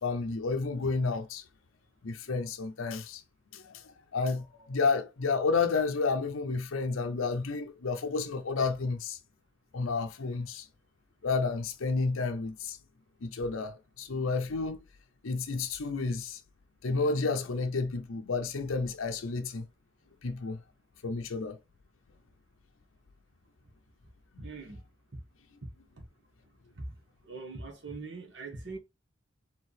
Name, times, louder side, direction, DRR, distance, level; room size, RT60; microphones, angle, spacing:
voice 1, 0.0-1.4 2.0-3.2 3.5-9.2 9.7-10.7 11.2-12.8 13.2-14.8 15.2-16.4 16.8-19.7 20.2-20.6 21.0-21.6 24.3-24.5, left 4 dB, 80° left, 0.6 m, -31 dB
voice 2, 24.4-24.8 26.7-26.9 27.2-28.8, right 3 dB, 60° right, 1.5 m, -41 dB
4.7 x 3.4 x 3.3 m
head